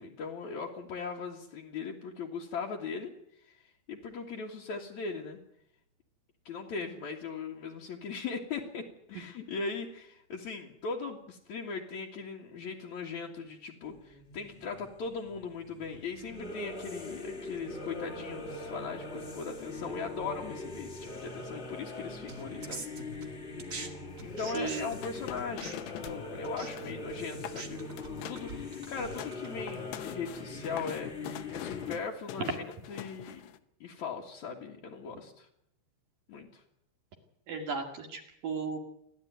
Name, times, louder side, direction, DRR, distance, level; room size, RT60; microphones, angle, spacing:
voice 1, 0.0-3.1 3.4-3.6 3.9-5.4 6.4-22.9 23.1-23.3 24.2-27.9 28.3-32.6 32.9-33.5 33.8-35.5 36.3-36.6, left 5 dB, 50° left, -2 dB, 2.5 m, -39 dB
sound 1, 13.8-32.0, left 2 dB, 20° left, 1.7 m, -42 dB
sound 2, 22.3-23.9 24.2-29.9, right 2 dB, 85° right, 0.7 m, -45 dB
sound 3, 24.4-26.2 26.5-27.0 27.3-27.6 28.0-28.5 28.9-33.6, left 12 dB, 75° left, 2.8 m, -44 dB
voice 2, 24.4-24.9 37.5-38.8, right 5 dB, 50° right, 3 dB, 3.4 m, -36 dB
30.0 x 12.0 x 9.4 m, 0.75 s
omnidirectional pair, 5.5 m